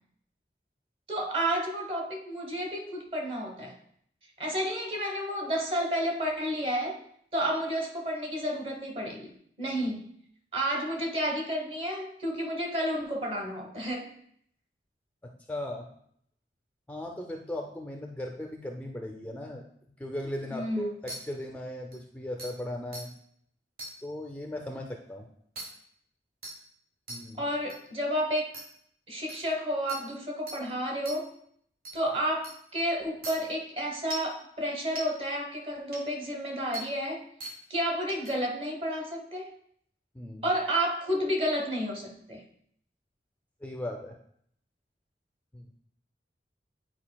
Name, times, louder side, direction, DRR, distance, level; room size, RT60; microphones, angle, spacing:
voice 1, 1.1-3.7 4.4-7.0 7.3-10.1 10.5-14.1 20.5-20.9 27.4-28.5 29.1-31.3 31.9-37.2 37.7-39.4 40.4-42.4, equal, 35° right, 0 dB, 1.1 m, -31 dB
voice 2, 15.2-15.9 16.9-19.6 20.0-23.1 24.0-25.3 27.1-27.4 40.1-40.4 43.6-44.2 45.5-45.6, left 1 dB, 10° left, 2 dB, 0.4 m, -37 dB
sound 1, 21.1-21.2 21.9-22.0 22.4-22.5 22.9-23.0 23.8-23.9 25.6-25.7 26.4-26.5 27.1-27.2 27.7-27.8 28.5-28.6 29.3-29.4 29.9-30.0 30.5-30.6 31.1-31.2 31.8-31.9 32.4-32.5 33.2-33.3 34.1-34.3 35.0-35.1 35.9-36.0 36.7-36.8 37.4-37.5 38.1-38.3, right 2 dB, 55° right, 1.2 m, -38 dB
9.3 x 4.6 x 2.2 m, 0.67 s
head